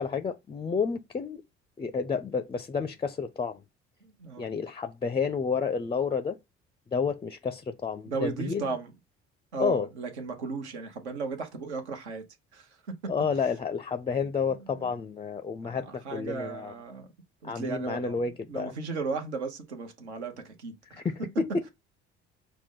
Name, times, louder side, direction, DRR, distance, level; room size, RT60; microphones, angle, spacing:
voice 1, 0.0-1.4 1.8-3.6 4.4-6.4 6.9-8.6 9.6-9.9 13.1-16.7 17.4-18.7 21.0-21.7, left 5 dB, 15° left, 0.4 m, -30 dB
voice 2, 4.0-4.5 8.1-8.9 9.5-12.2 12.5-12.9 14.5-14.9 15.6-17.1 17.4-18.2 18.5-21.0, right 4 dB, 80° right, 0.9 m, -35 dB
5.9 x 2.1 x 3.7 m
figure-of-eight pair, 50°, 33 cm